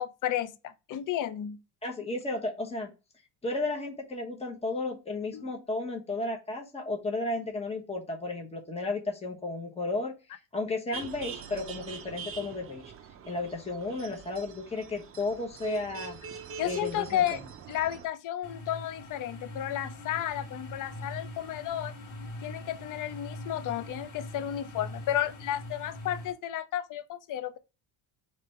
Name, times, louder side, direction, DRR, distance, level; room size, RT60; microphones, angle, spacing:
voice 1, 0.0-1.6 5.3-5.4 16.6-17.4 17.7-21.9 22.4-27.6, left 11 dB, 40° left, 0.5 m, -32 dB
voice 2, 1.8-2.9 3.4-10.1 10.5-12.9 13.3-16.2 16.6-17.4, left 2 dB, 10° left, 1.1 m, -33 dB
sound 1, 10.9-18.1, right 6 dB, 30° right, 0.5 m, -43 dB
sound 2, 18.4-26.3, left 1 dB, 70° left, 1.8 m, -42 dB
3.3 x 3.3 x 4.2 m
cardioid pair, 105°, 49 cm